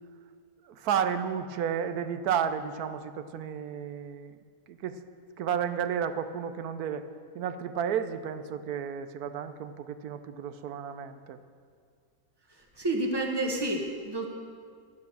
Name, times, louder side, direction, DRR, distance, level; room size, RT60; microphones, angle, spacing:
voice 1, 0.6-4.4 4.7-5.0 5.4-7.1 7.3-11.4, right 8 dB, 70° right, 11 dB, 1.1 m, -32 dB
voice 2, 12.8-14.3, right 2 dB, 15° right, 1 dB, 1.3 m, -29 dB
13.0 x 9.4 x 7.0 m, 2.1 s
omnidirectional pair, 1.8 m